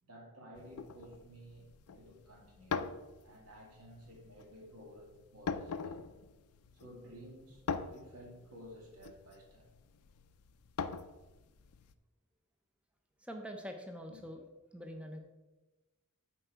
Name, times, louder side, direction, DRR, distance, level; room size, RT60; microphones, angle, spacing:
voice 1, 0.0-2.9 3.2-6.1 6.7-7.7 7.9-9.7 14.1-14.2, equal, 85° right, 0 dB, 2.1 m, -53 dB
sound 1, 0.6-11.9, left 5 dB, 85° left, 0.4 m, -43 dB
voice 2, 13.2-14.5 14.7-15.2, equal, 5° right, 4 dB, 0.5 m, -44 dB
10.5 x 4.6 x 4.5 m, 1.1 s
head